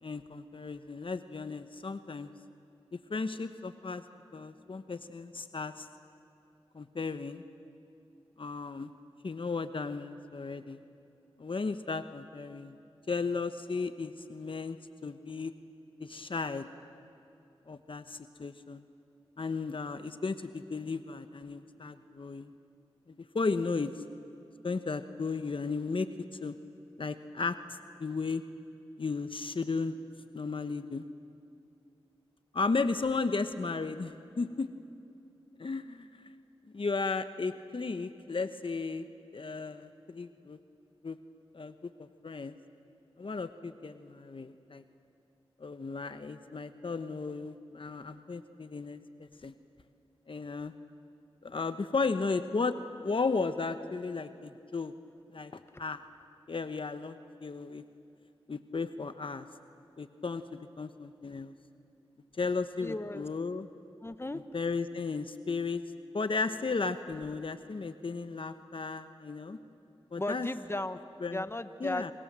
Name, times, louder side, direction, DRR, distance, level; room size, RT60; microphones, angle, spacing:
voice 1, 0.0-2.3 2.9-4.0 4.3-5.9 6.7-7.4 8.4-8.9 9.2-10.8 11.4-12.8 13.1-14.8 15.0-15.5 16.0-16.7 17.7-18.8 19.4-22.5 23.3-24.0 24.6-26.1 26.4-26.6 27.0-28.4 29.0-29.9 30.3-31.1 32.5-34.7 35.6-36.1 36.7-39.0 39.3-40.6 41.0-41.2 41.5-41.7 42.0-42.5 43.2-44.8 45.6-49.5 50.3-50.7 51.4-52.7 53.0-54.9 55.3-56.0 56.5-57.8 58.5-59.5 60.0-61.5 62.4-63.7 64.5-65.8 66.1-69.6 70.1-70.5 71.2-71.4 71.8-72.1, left 4 dB, 55° left, 10 dB, 1.1 m, -35 dB
voice 2, 62.8-63.3 64.0-64.4 70.1-71.0 71.3-72.1, left 1 dB, 25° left, 11 dB, 1.4 m, -35 dB
30.0 x 26.0 x 7.6 m, 2.6 s
cardioid pair, 40°, 11 cm